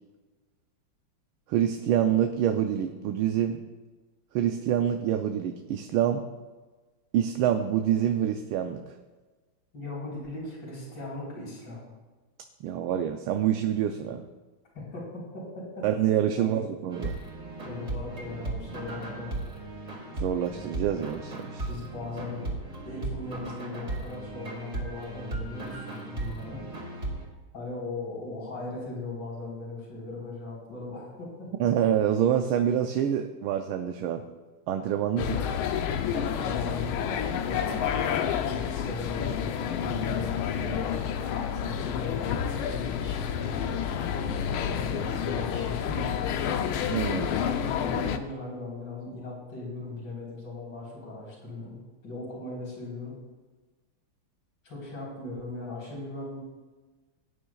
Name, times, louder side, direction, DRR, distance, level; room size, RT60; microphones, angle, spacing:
voice 1, 1.5-3.6 4.3-6.2 7.1-8.8 12.6-14.2 15.8-17.2 20.2-21.7 31.6-34.2 34.7-35.4 46.9-47.3, right 10 dB, 85° right, 5 dB, 1.5 m, -26 dB
voice 2, 9.7-11.8 14.7-15.9 16.4-16.7 17.6-19.4 21.7-22.5 22.9-26.6 27.5-31.5 36.1-38.0 38.4-40.9 41.6-46.2 47.7-51.7 52.0-53.2 54.6-56.4, left 2 dB, 55° left, -5 dB, 4.6 m, -38 dB
sound 1, 16.9-27.2, right 2 dB, 35° right, 2.7 m, -36 dB
sound 2, 35.2-48.2, left 8 dB, 85° left, 1.6 m, -29 dB
17.5 x 9.7 x 2.3 m, 1.3 s
omnidirectional pair, 2.3 m